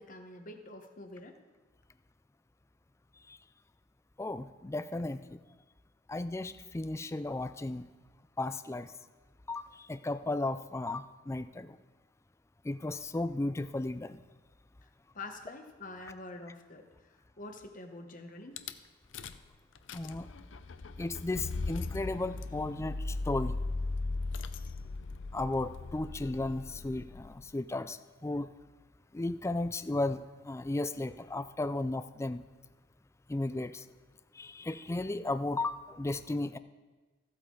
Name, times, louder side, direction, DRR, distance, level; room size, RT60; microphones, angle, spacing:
voice 1, 0.0-1.4 15.1-16.8 17.4-18.6, left 2 dB, 45° left, 5 dB, 1.1 m, -46 dB
voice 2, 4.2-5.2 6.1-7.9 8.4-8.9 9.5-11.8 12.6-14.2 19.9-20.3 21.0-23.5 25.3-28.5 29.1-32.4 33.3-33.8 34.4-36.6, left 2 dB, 15° left, 12 dB, 0.3 m, -35 dB
Rattle / Car / Engine starting, 18.6-18.7 19.1-19.5 19.8-27.5, left 3 dB, 75° left, 0.6 m, -38 dB
14.5 x 8.4 x 3.9 m, 1.3 s
head